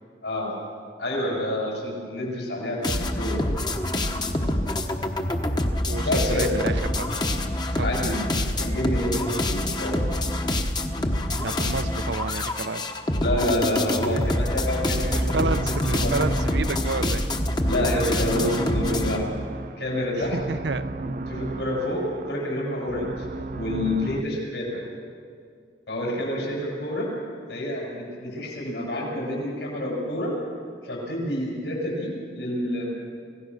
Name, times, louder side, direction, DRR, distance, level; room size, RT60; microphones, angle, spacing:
voice 1, 0.2-0.5 1.0-3.4 6.0-6.5 7.8-10.2 13.2-16.2 17.6-19.3 19.8-20.4 21.0-23.1 23.5-24.8 25.9-27.1 27.5-30.3 30.8-32.9, left 1 dB, 75° left, -3 dB, 7.6 m, -28 dB
sound 1, 2.8-19.2, left 1 dB, 25° left, 1.1 m, -26 dB
voice 2, 5.9-7.1 7.7-8.0 11.4-12.9 15.1-17.3 20.1-20.9, right 3 dB, 70° right, 10 dB, 0.9 m, -30 dB
sound 2, 14.2-24.2, right 2 dB, 45° right, 0.5 m, -34 dB
26.5 x 17.0 x 6.5 m, 2.2 s
head